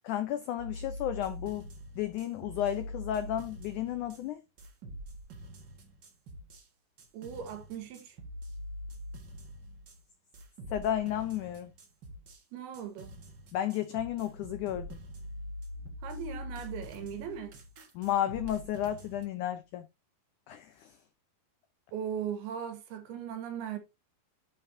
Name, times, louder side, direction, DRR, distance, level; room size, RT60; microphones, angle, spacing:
voice 1, 0.1-1.7 2.0-4.4 10.7-11.7 13.5-15.0 18.0-19.9 20.5-20.9, left 11 dB, 85° left, 1.7 m, -33 dB
sound 1, 0.6-4.2 4.6-6.7 7.0-10.0 10.3-12.4 12.7-19.2, equal, 60° right, 1.1 m, -44 dB
voice 2, 7.1-8.2 12.5-13.1 16.0-17.5 21.9-23.8, right 8 dB, 85° right, 3.4 m, -38 dB
11.0 x 5.4 x 2.7 m
omnidirectional pair, 4.4 m